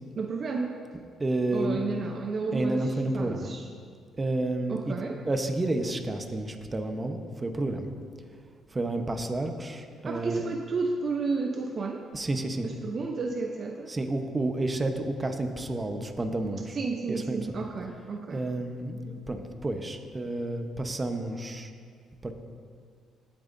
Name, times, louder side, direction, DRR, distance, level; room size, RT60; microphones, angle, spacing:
voice 1, 0.2-0.8 1.5-3.7 4.7-5.2 10.0-12.0 12.6-13.9 16.7-18.4, right 4 dB, 45° right, 3 dB, 0.7 m, -32 dB
voice 2, 1.2-1.8 2.5-3.5 4.2-4.9 5.3-7.9 8.7-10.4 12.1-12.7 13.9-16.8 17.1-17.6 18.3-21.7 22.2-22.3, right 2 dB, 25° right, 5 dB, 1.0 m, -30 dB
18.0 x 9.0 x 2.7 m, 2.1 s
cardioid pair, 95°, 0 cm